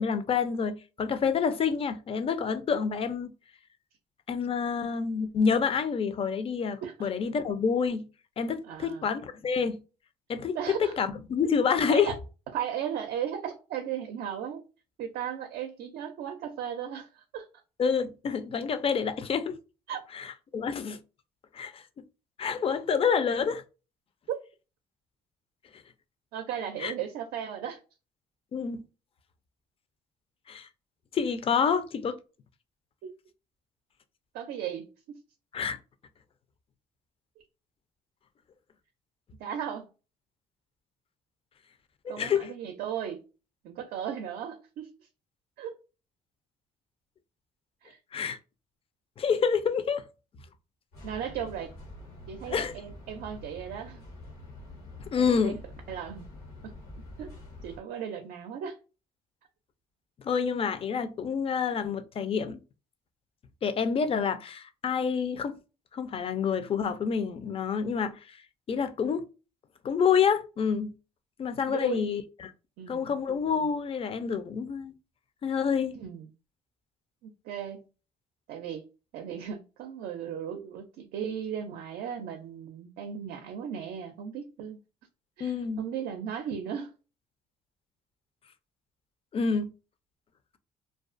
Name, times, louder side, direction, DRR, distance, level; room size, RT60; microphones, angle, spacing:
voice 1, 0.0-3.3 4.3-8.1 8.4-9.8 10.3-12.1 17.8-19.6 20.1-21.0 21.5-22.0 22.4-23.6 26.8-26.9 28.5-28.9 30.5-30.7 31.1-32.2 35.5-35.8 42.0-42.5 48.1-48.4 49.2-50.0 52.5-52.7 55.0-55.6 60.2-62.6 63.6-65.6 65.9-68.4 68.7-69.2 69.8-70.9 71.4-72.5 72.9-74.9 75.4-76.0 85.4-85.8 89.3-89.7, left 6 dB, 35° left, 0.4 m, -28 dB
voice 2, 8.6-9.1 10.5-11.0 11.9-12.1 12.5-14.6 15.0-17.5 19.9-20.0 24.3-24.4 26.3-27.8 33.0-33.1 34.3-35.2 39.4-39.9 42.1-43.2 43.6-45.1 45.6-45.7 47.8-48.0 51.0-51.7 52.3-54.0 55.2-55.5 55.9-56.2 56.6-56.8 57.2-57.4 57.6-58.8 71.7-72.1 72.8-73.2 76.0-76.3 77.2-77.8 78.5-78.9 79.1-84.8 85.4-87.0, right 9 dB, 75° right, 0.4 m, -36 dB
sound 1, 50.9-57.8, left 2 dB, 85° left, 1.0 m, -46 dB
2.4 x 2.3 x 2.4 m
supercardioid pair, 75°, 16 cm